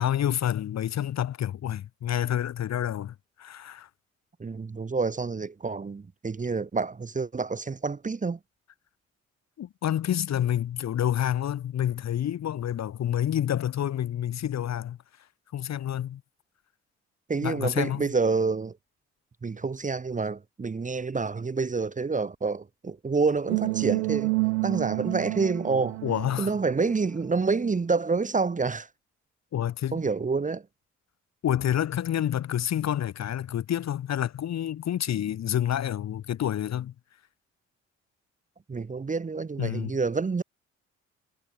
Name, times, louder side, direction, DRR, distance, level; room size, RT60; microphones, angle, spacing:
voice 1, 0.0-3.9 9.6-15.0 15.5-16.2 17.4-18.1 26.0-26.5 29.5-30.0 31.4-36.9 39.6-39.9, left 10 dB, 50° left, 1.2 m, -28 dB
voice 2, 4.4-8.4 17.3-18.8 19.4-24.3 24.6-26.0 26.4-28.9 29.9-30.6 38.7-40.4, right 4 dB, 20° right, 1.0 m, -28 dB
sound 1, 23.5-27.4, right 28 dB, 80° right, 1.3 m, -29 dB
hypercardioid pair, 45°, 35 cm